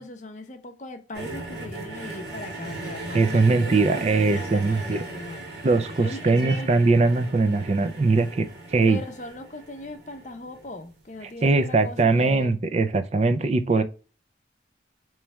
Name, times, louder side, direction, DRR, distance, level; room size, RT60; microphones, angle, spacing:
voice 1, 0.0-5.4 6.0-6.7 8.9-12.6, left 2 dB, 40° left, 0.6 m, -39 dB
sound 1, 1.1-11.3 12.2-12.3, right 2 dB, 65° right, 1.8 m, -38 dB
voice 2, 3.1-5.0 5.6-9.0 11.4-13.8, right 3 dB, 35° right, 0.4 m, -21 dB
4.6 x 3.1 x 3.1 m
head